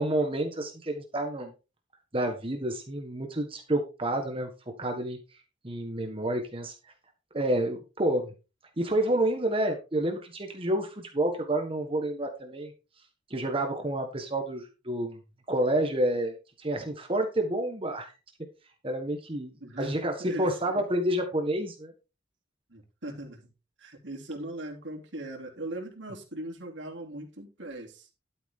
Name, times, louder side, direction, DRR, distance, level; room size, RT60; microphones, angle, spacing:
voice 1, 0.0-1.5 2.1-4.5 4.8-5.2 5.6-6.7 7.3-8.3 8.8-12.7 13.3-15.2 15.5-18.1 18.8-21.9, right 1 dB, 30° right, 4 dB, 1.6 m, -29 dB
voice 2, 19.6-19.9 20.2-20.7 22.7-23.4 23.8-28.1, right 1 dB, 80° right, 0 dB, 3.2 m, -39 dB
13.0 x 7.2 x 3.8 m, 0.30 s
head